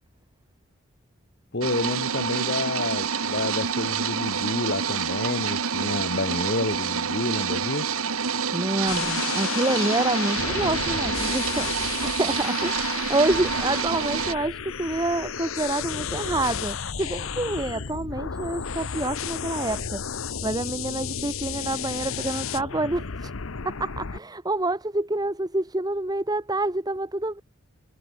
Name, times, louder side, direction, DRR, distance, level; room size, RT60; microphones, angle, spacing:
voice 1, 1.5-7.9, left 2 dB, 50° left, 1.6 m, -29 dB
sound 1, 1.6-14.3, right 6 dB, 75° right, 1.5 m, -28 dB
voice 2, 8.5-20.0 20.4-23.3 23.6-27.4, right 2 dB, 15° right, 1.2 m, -27 dB
sound 2, 8.9-24.2, left 7 dB, 65° left, 0.9 m, -32 dB
head